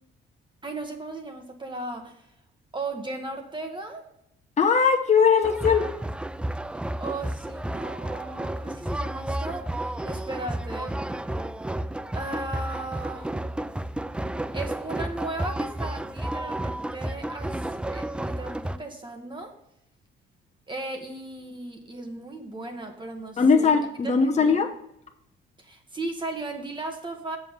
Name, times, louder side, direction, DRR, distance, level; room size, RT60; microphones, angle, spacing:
voice 1, 0.6-2.3 2.7-4.1 7.0-11.0 12.1-13.3 14.5-19.5 20.7-23.7 24.2-24.6 25.6-27.4, right 2 dB, 25° right, 3 dB, 1.3 m, -36 dB
voice 2, 4.6-5.8 23.4-24.7, left 5 dB, 35° left, 3 dB, 1.0 m, -20 dB
sound 1, 5.4-18.8, right 1 dB, 5° right, 0.3 m, -32 dB
7.5 x 5.8 x 5.2 m, 0.77 s
cardioid pair, 90°, 20 cm